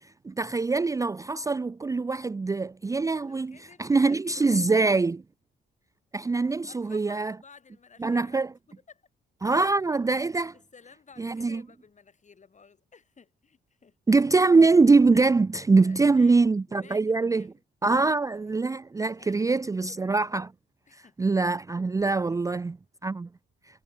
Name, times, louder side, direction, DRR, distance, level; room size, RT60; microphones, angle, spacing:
voice 1, 0.2-5.2 6.1-7.3 8.0-8.5 9.4-10.5 11.2-11.6 14.1-17.5 17.8-20.5 20.9-22.8 23.0-23.3, right 3 dB, 15° right, 0.5 m, -23 dB
voice 2, 3.2-4.4 6.7-8.4 8.9-9.1 10.5-14.0 15.8-17.6 19.2-20.1 20.9-21.1 22.0-22.5, left 5 dB, 35° left, 5.1 m, -55 dB
cardioid pair, 90°, 20 cm